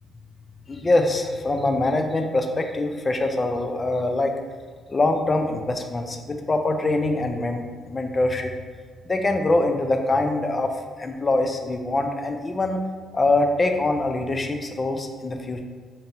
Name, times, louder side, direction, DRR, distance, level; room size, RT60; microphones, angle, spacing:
voice 1, 0.7-4.3 4.9-8.5 9.0-12.8 13.1-15.6, left 2 dB, 30° left, 5 dB, 0.4 m, -24 dB
5.0 x 2.9 x 2.8 m, 1.5 s
cardioid pair, 90°, 0 cm